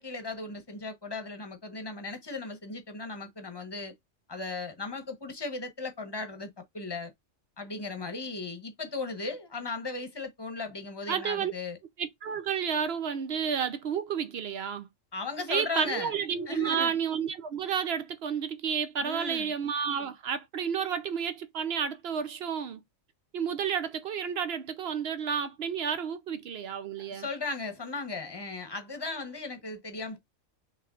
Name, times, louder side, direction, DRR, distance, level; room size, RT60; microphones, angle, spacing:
voice 1, 0.0-3.9 4.3-7.1 7.6-11.8 15.1-16.1 16.5-16.9 19.0-19.5 27.0-30.2, left 3 dB, 20° left, 1.0 m, -37 dB
voice 2, 11.1-11.5 12.0-14.9 15.5-22.8 23.3-27.3, right 7 dB, 60° right, 0.7 m, -31 dB
5.8 x 3.4 x 2.4 m
omnidirectional pair, 1.4 m